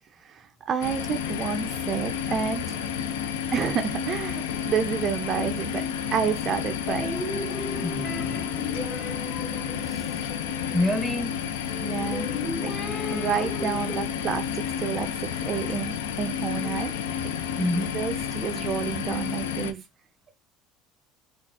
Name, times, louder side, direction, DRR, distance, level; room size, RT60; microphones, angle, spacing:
voice 1, 0.2-2.8 3.5-7.1 11.8-12.3 12.6-12.7 13.1-16.9 17.9-19.8, right 7 dB, 45° right, 0.4 m, -30 dB
sound 1, 0.8-19.7, left 8 dB, 80° left, 0.4 m, -31 dB
sound 2, 6.9-11.1 12.1-14.0, left 2 dB, 45° left, 1.8 m, -35 dB
voice 2, 7.8-8.6 9.9-10.1 10.7-11.4 17.6-17.9, left 1 dB, ahead, 0.7 m, -28 dB
3.9 x 2.3 x 2.5 m
hypercardioid pair, 75°, 0 cm